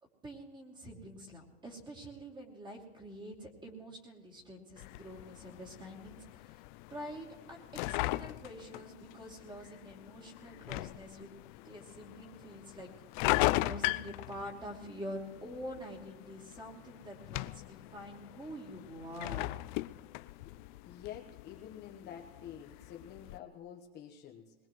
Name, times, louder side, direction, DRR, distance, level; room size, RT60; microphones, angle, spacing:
voice 1, 0.2-6.6 6.9-11.3 11.6-12.9 13.2-19.5, equal, 15° right, 0 dB, 2.8 m, -46 dB
sound 1, 4.8-23.4, left 19 dB, 50° left, 0.4 m, -39 dB
voice 2, 20.9-24.5, left 9 dB, 30° left, 1 dB, 1.1 m, -48 dB
21.5 x 21.0 x 3.1 m, 1.2 s
supercardioid pair, 140°, 32 cm